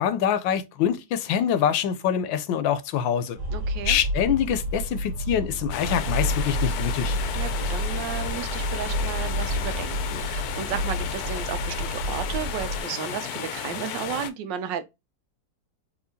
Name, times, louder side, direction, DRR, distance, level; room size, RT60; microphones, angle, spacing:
voice 1, 0.0-3.4 3.8-7.2, left 9 dB, 90° left, 1.4 m, -25 dB
sound 1, 3.4-12.8, equal, 45° right, 1.5 m, -29 dB
voice 2, 3.5-4.0 7.4-14.8, right 8 dB, 80° right, 1.3 m, -33 dB
sound 2, 5.7-14.3, left 9 dB, 70° left, 1.0 m, -33 dB
4.4 x 2.8 x 2.7 m
omnidirectional pair, 2.0 m